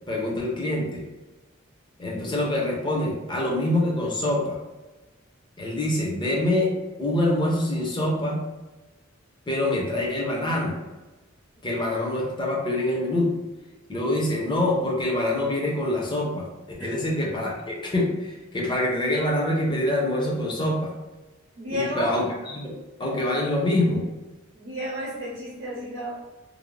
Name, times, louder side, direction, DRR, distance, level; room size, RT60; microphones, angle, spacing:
voice 1, 0.1-1.1 2.0-4.6 5.6-6.7 7.0-8.4 9.5-10.8 11.6-13.3 13.9-16.5 16.8-20.9 21.7-24.0, left 1 dB, 20° left, -2 dB, 0.5 m, -25 dB
voice 2, 21.6-22.1 24.5-26.3, equal, 65° right, -5 dB, 0.7 m, -32 dB
2.6 x 2.0 x 3.0 m, 1.1 s
head